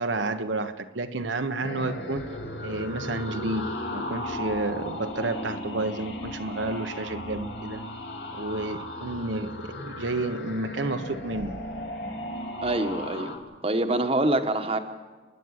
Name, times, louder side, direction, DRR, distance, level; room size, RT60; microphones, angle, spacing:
voice 1, 0.0-2.3 2.6-7.8 8.3-11.6, right 2 dB, 75° right, 7 dB, 1.2 m, -31 dB
sound 1, 1.6-13.4, left 1 dB, 60° left, 3.1 m, -36 dB
voice 2, 12.6-13.4 13.6-14.8, right 2 dB, 30° right, 7 dB, 1.4 m, -25 dB
30.0 x 11.0 x 9.7 m, 1.4 s
head